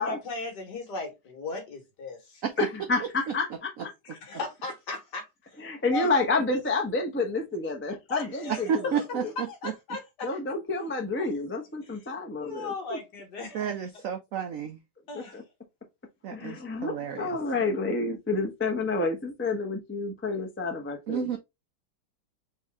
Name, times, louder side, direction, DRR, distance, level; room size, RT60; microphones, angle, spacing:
voice 1, 0.0-2.4 4.1-5.3 5.9-6.6 8.1-9.1 9.4-10.3 12.4-13.7 15.1-15.4, left 3 dB, 60° left, 2.0 m, -37 dB
voice 2, 2.6-3.9 5.6-9.3 10.2-13.0 15.1-15.4 16.3-21.4, left 3 dB, 10° left, 0.6 m, -29 dB
voice 3, 8.7-9.7 13.5-14.8 16.2-17.3 21.1-21.4, right 8 dB, 80° right, 0.7 m, -31 dB
4.5 x 3.3 x 3.5 m
omnidirectional pair, 2.2 m